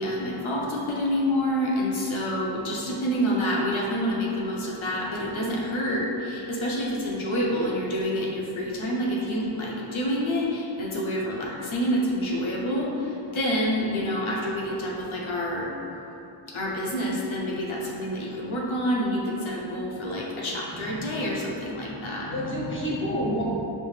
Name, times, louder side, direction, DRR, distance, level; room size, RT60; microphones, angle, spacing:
voice 1, 0.0-15.7 16.5-22.3, equal, 70° left, -4 dB, 0.7 m, -28 dB
voice 2, 20.7-21.2 22.2-23.4, equal, 25° left, -5 dB, 0.7 m, -30 dB
5.2 x 2.0 x 3.1 m, 2.9 s
wide cardioid pair, 95°, 49 cm